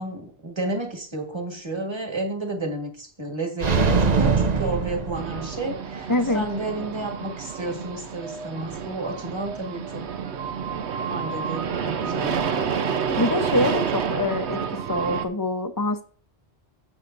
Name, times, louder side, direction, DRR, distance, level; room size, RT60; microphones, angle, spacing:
voice 1, 0.0-10.1 11.1-12.6, right 2 dB, 25° right, 3 dB, 1.6 m, -31 dB
sound 1, 3.6-5.8, right 4 dB, 45° right, 0.8 m, -22 dB
sound 2, 5.2-15.3, right 6 dB, 80° right, 1.1 m, -29 dB
voice 2, 6.1-6.4 13.2-14.6 14.9-16.0, left 2 dB, 20° left, 8 dB, 0.8 m, -24 dB
15.0 x 6.5 x 2.6 m, 0.43 s
omnidirectional pair, 1.1 m